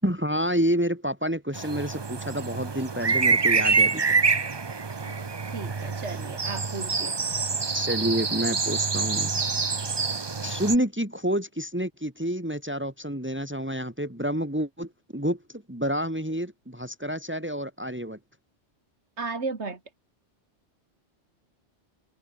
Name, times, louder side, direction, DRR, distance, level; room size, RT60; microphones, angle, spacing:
voice 1, 0.0-4.0 7.7-9.3 10.4-18.2, equal, 10° right, 4.0 m, -29 dB
sound 1, 1.5-10.7, right 4 dB, 25° right, 0.6 m, -26 dB
voice 2, 4.9-7.2 19.2-19.8, right 4 dB, 70° right, 2.7 m, -35 dB
omnidirectional pair, 1.2 m